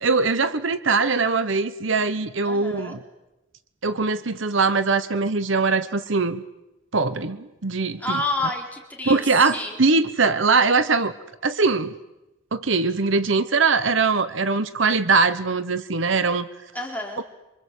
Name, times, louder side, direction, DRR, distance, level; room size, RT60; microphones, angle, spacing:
voice 1, 0.0-3.0 3.8-6.4 6.9-8.2 9.1-11.1 11.4-11.9 12.5-16.5 17.2-17.3, right 4 dB, 60° right, 13 dB, 1.1 m, -21 dB
voice 2, 2.4-3.0 8.0-9.8 16.7-17.2, left 2 dB, 10° left, 1 dB, 4.0 m, -29 dB
27.0 x 25.5 x 8.3 m, 0.98 s
head